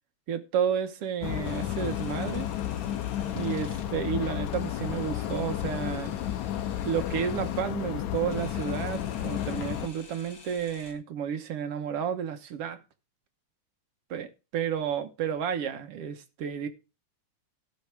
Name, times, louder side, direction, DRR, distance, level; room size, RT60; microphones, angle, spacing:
voice 1, 0.3-2.5 3.3-6.1 6.8-12.8 14.1-16.7, right 8 dB, 60° right, 1.9 m, -31 dB
sound 1, 1.2-9.9, left 11 dB, 75° left, 2.1 m, -32 dB
Camera, 1.4-10.9, left 3 dB, 35° left, 2.4 m, -52 dB
16.0 x 5.5 x 4.8 m
omnidirectional pair, 3.4 m